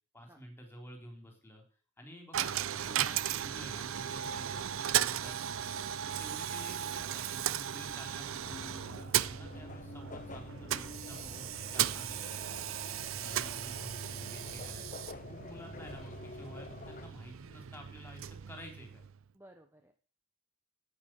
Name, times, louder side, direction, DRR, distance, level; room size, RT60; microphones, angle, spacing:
voice 1, 0.1-1.6 2.0-5.6 6.1-12.4 13.1-14.9 15.3-19.0, equal, 10° left, 2 dB, 3.8 m, -51 dB
Coin (dropping), 2.3-19.3, right 10 dB, 70° right, 0.5 m, -36 dB
sound 1, 8.4-17.1, left 3 dB, 40° left, 0.7 m, -48 dB
voice 2, 12.2-12.6 12.9-13.1 19.3-19.9, right 1 dB, 10° right, 6 dB, 0.9 m, -59 dB
9.9 x 9.0 x 7.7 m, 0.41 s
head